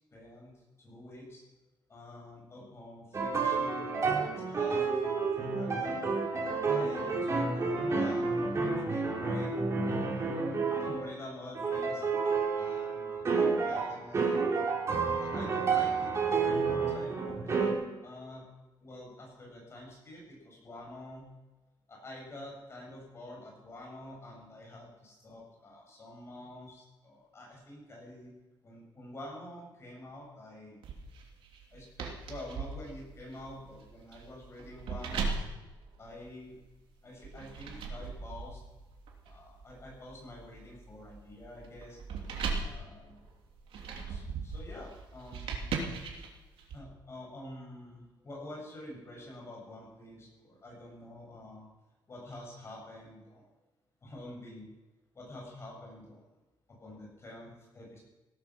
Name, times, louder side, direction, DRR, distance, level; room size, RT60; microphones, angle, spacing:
voice 1, 0.1-0.5 0.8-1.4 1.9-6.0 6.7-9.5 10.1-10.4 10.8-13.1 13.6-14.3 15.2-17.6 18.0-18.4 18.8-21.3 21.9-28.3 28.6-30.8 31.7-35.4 36.0-36.6 37.0-38.6 39.2-42.0 42.6-43.2 44.1-45.7 46.7-51.7 52.1-53.4 54.0-54.7 55.1-56.2 56.8-58.0, left 1 dB, 30° left, -1 dB, 7.4 m, -47 dB
sound 1, 3.1-11.1 11.5-17.7, right 4 dB, 35° right, 3.6 m, -30 dB
sound 2, 30.8-36.6 37.2-46.8, right 4 dB, 80° right, 3.0 m, -39 dB
17.0 x 13.0 x 6.2 m, 1.1 s
cardioid pair, 150°, 9 cm